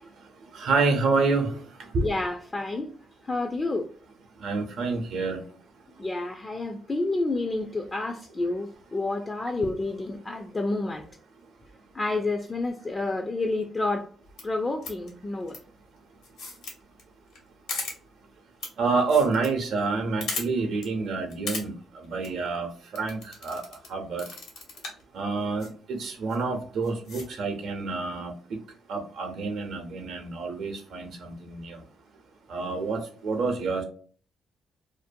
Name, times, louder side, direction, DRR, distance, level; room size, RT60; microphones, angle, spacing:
voice 1, 0.5-1.5 1.9-2.1 4.4-5.4 18.8-21.7 22.0-22.7 22.9-23.6 23.9-24.2 25.1-28.3 28.9-31.8 32.5-33.8, right 4 dB, 70° right, 0.6 m, -28 dB
voice 2, 2.0-2.9 3.2-3.9 6.0-11.1 11.9-14.1 14.4-15.6 24.8-24.9, left 2 dB, 25° left, 0.3 m, -29 dB
sound 1, 14.3-14.4 14.8-15.1 15.5-15.6 16.2-16.7 17.0-17.1 17.3-17.4 17.7-17.9 18.6-18.7 19.0-19.5 19.8-19.9 20.2-20.4 20.8-20.9 21.3-21.6 22.0-22.3 22.9-23.9 24.2-25.0 25.6-25.7 26.3-26.4 26.8-27.2, left 3 dB, 75° left, 1.1 m, -35 dB
2.5 x 2.2 x 2.5 m
cardioid pair, 90°, 0 cm